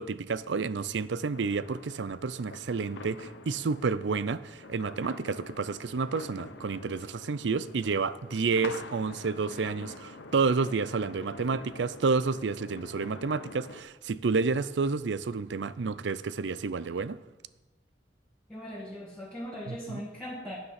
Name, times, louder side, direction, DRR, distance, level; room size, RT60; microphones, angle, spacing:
voice 1, 0.0-17.2 19.7-20.0, right 4 dB, 75° right, 16 dB, 0.5 m, -30 dB
sound 1, 1.3-13.8, left 3 dB, 75° left, 0.9 m, -46 dB
voice 2, 18.5-20.7, equal, 5° left, -7 dB, 2.1 m, -39 dB
9.7 x 9.6 x 5.8 m, 1.1 s
head